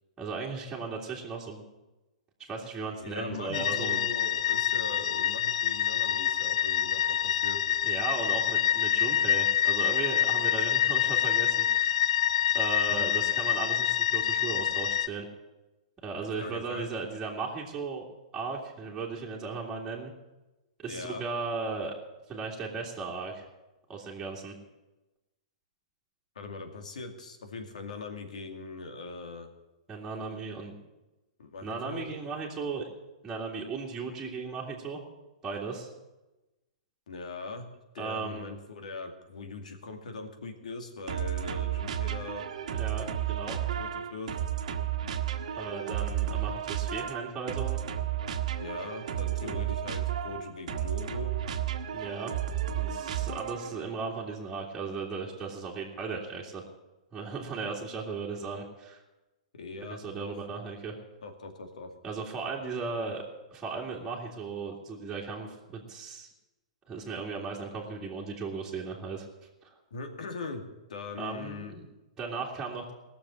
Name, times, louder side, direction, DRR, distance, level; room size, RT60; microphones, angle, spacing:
voice 1, 0.2-1.6 2.4-4.0 7.8-12.0 12.5-15.3 16.0-18.1 18.3-20.1 20.8-21.9 22.3-23.5 23.9-24.5 29.9-30.7 31.6-32.9 33.2-35.0 35.4-35.9 38.0-38.6 42.7-43.6 45.6-47.8 49.4-49.6 51.9-52.3 52.8-56.6 57.1-59.0 59.8-61.0 62.0-63.2 63.5-66.3 66.9-69.3 69.6-69.7 71.2-71.8 72.2-72.9, right 4 dB, 15° right, -4 dB, 2.2 m, -36 dB
voice 2, 3.0-7.6 12.9-13.2 16.2-16.9 20.9-21.2 26.4-29.5 31.4-32.1 37.1-37.7 37.9-42.5 43.5-44.4 48.6-51.4 59.5-60.3 61.2-61.9 69.9-70.6 70.9-71.7, left 3 dB, 85° left, 5 dB, 2.3 m, -41 dB
sound 1, 3.5-15.1, left 10 dB, 65° left, 0.6 m, -27 dB
sound 2, 41.1-53.8, right 10 dB, 70° right, 1.3 m, -32 dB
18.0 x 7.0 x 8.6 m, 1.0 s
hypercardioid pair, 140°, 4 cm